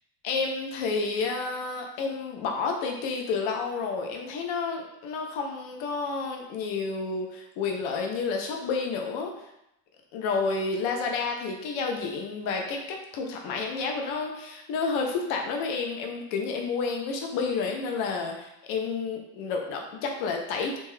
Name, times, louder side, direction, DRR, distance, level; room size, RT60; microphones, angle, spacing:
voice 1, 0.2-9.3 10.1-20.8, left 4 dB, 75° left, 2 dB, 0.7 m, -30 dB
2.9 x 2.2 x 3.1 m, 0.83 s
supercardioid pair, 90°, 47 cm